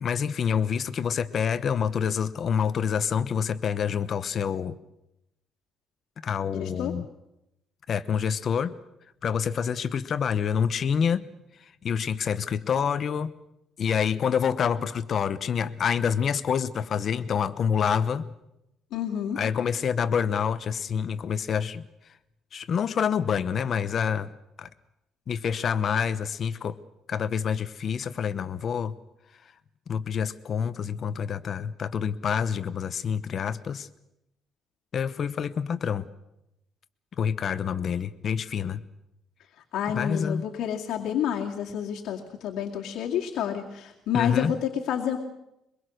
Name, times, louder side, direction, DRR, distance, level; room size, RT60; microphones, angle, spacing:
voice 1, 0.0-4.8 6.2-7.1 7.9-8.7 9.2-11.2 11.8-13.3 13.8-18.3 19.4-21.8 22.5-24.3 24.6-24.7 25.3-26.8 27.1-28.9 29.9-33.9 34.9-36.1 37.2-38.8 39.9-40.5 44.1-44.5, left 7 dB, 40° left, 13 dB, 1.0 m, -27 dB
voice 2, 6.5-6.9 18.9-19.4 39.7-45.2, left 9 dB, 75° left, 0 dB, 2.3 m, -29 dB
23.0 x 22.0 x 6.5 m, 0.87 s
cardioid pair, 140°, 0 cm